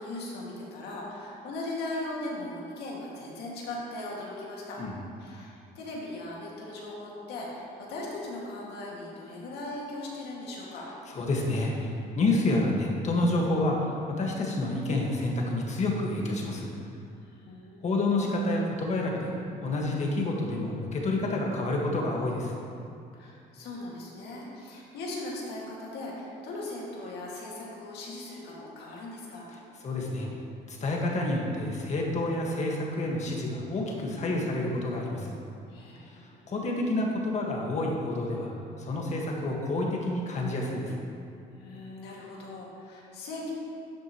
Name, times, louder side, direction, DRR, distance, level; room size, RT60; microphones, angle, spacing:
voice 1, 0.0-4.8 5.2-10.9 17.4-17.8 23.1-29.5 35.7-36.5 41.6-43.5, left 2 dB, 80° left, -4 dB, 2.3 m, -39 dB
voice 2, 11.1-16.7 17.8-19.3 19.6-22.5 29.8-30.3 30.7-35.3 36.5-38.5 38.8-40.9, left 2 dB, 40° left, -1 dB, 1.8 m, -28 dB
12.0 x 7.7 x 3.2 m, 2.6 s
cardioid pair, 110°, 17 cm